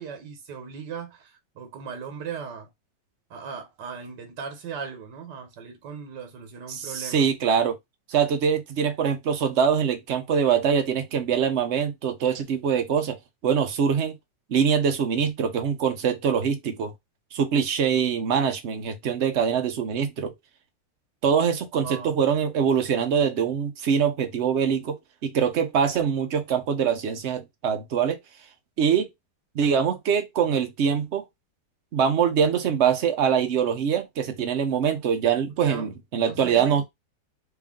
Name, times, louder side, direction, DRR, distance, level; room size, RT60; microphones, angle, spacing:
voice 1, 0.0-2.7 3.3-7.3 21.8-22.2 35.6-35.9 36.3-36.8, right 6 dB, 80° right, 1.6 m, -38 dB
voice 2, 6.7-7.8 8.1-13.2 13.4-14.2 14.5-16.9 17.3-20.3 21.2-25.0 25.2-28.2 28.8-29.1 29.5-31.2 31.9-36.8, right 7 dB, 55° right, 0.8 m, -23 dB
3.4 x 2.5 x 3.6 m
omnidirectional pair, 1.8 m